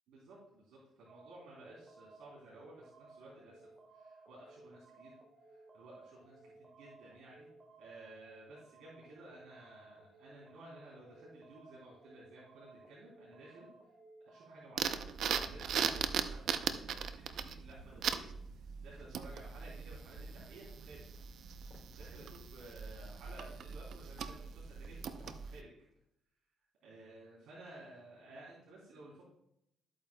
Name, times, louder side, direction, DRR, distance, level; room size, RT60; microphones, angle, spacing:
voice 1, 0.1-3.7 3.9-5.1 5.5-7.5 7.8-13.7 14.2-15.0 15.3-18.2 18.8-21.0 22.0-25.7 26.8-29.2, right 2 dB, 85° right, -7 dB, 3.2 m, -55 dB
sound 1, 1.1-15.0, right 3 dB, 30° right, 1.0 m, -59 dB
sound 2, 14.8-25.6, right 7 dB, 70° right, 0.6 m, -39 dB
sound 3, 21.7-22.0 23.5-23.7 25.1-25.5 25.9-26.0, left 3 dB, 45° left, 3.1 m, -58 dB
13.0 x 8.6 x 2.3 m, 0.77 s
cardioid pair, 90°, 0 cm